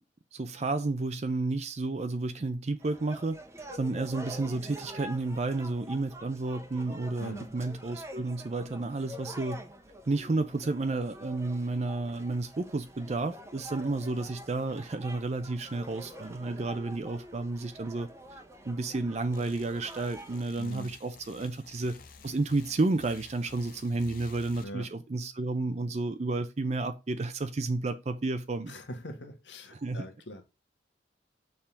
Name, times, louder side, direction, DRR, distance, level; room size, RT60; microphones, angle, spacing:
voice 1, 0.3-3.4 3.7-9.6 10.1-18.1 18.7-22.0 22.2-28.7 29.7-30.0, right 2 dB, 35° right, 0.5 m, -31 dB
sound 1, 2.8-20.4, equal, 15° right, 0.9 m, -46 dB
voice 2, 7.2-7.5 20.6-20.9 24.6-24.9 28.7-30.4, equal, 85° left, 1.5 m, -42 dB
sound 2, 19.3-24.6, left 5 dB, 50° left, 0.9 m, -52 dB
6.7 x 3.7 x 5.7 m
head